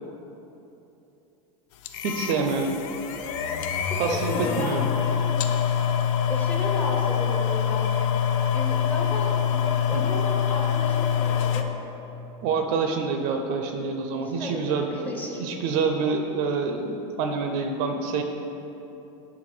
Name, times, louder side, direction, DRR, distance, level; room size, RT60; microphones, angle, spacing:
sound 1, 1.8-11.6, left 8 dB, 65° left, 0.4 m, -25 dB
voice 1, 2.0-2.7 4.0-4.9 9.9-10.0 12.4-14.9 15.4-18.2, right 4 dB, 50° right, 5 dB, 0.4 m, -26 dB
voice 2, 3.8-4.8 6.3-8.1 8.5-11.7 14.1-15.4, left 1 dB, 10° left, -1 dB, 0.6 m, -34 dB
5.9 x 3.3 x 4.9 m, 3.0 s
supercardioid pair, 140°, 17 cm